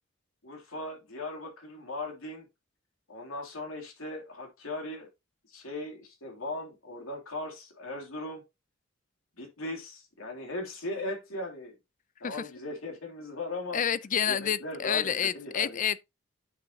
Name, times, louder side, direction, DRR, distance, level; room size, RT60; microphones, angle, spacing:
voice 1, 0.4-2.5 3.1-5.1 5.5-8.4 9.4-11.8 12.2-13.8 14.3-15.8, left 2 dB, 85° left, 2.9 m, -38 dB
voice 2, 13.7-16.0, left 8 dB, 40° left, 0.4 m, -29 dB
9.5 x 6.2 x 2.8 m
head